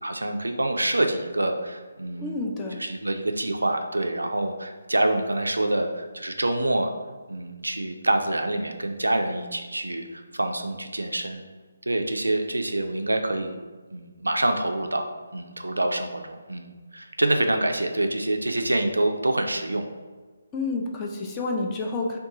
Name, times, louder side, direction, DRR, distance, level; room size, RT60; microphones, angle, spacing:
voice 1, 0.0-2.4 2.8-6.9 7.3-11.4 11.9-13.6 13.9-15.1 15.3-19.9, right 1 dB, 85° right, 5 dB, 0.3 m, -26 dB
voice 2, 2.2-2.8 20.5-22.2, left 3 dB, 20° left, 0 dB, 0.4 m, -29 dB
2.7 x 2.2 x 3.7 m, 1.4 s
figure-of-eight pair, 150°, 0 cm